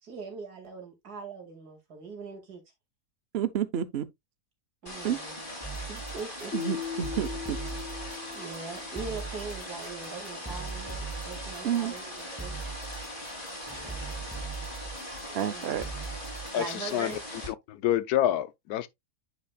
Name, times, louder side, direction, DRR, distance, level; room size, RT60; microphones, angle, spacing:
voice 1, 0.0-2.6 4.8-5.4 5.9-6.5 8.3-12.6 15.3-15.8 16.5-17.2, right 4 dB, 90° right, 2.6 m, -41 dB
voice 2, 3.3-4.1 5.0-5.2 6.5-7.6 11.6-11.9 15.3-15.8, right 9 dB, 55° right, 0.8 m, -29 dB
sound 1, 4.9-17.5, left 1 dB, 35° left, 2.7 m, -40 dB
sound 2, 5.6-17.2, right 5 dB, 5° right, 0.9 m, -41 dB
Keyboard (musical), 6.5-9.4, left 9 dB, 55° left, 0.8 m, -39 dB
voice 3, 16.5-17.1 17.5-18.9, left 12 dB, 85° left, 1.2 m, -27 dB
9.2 x 5.6 x 2.2 m
omnidirectional pair, 1.6 m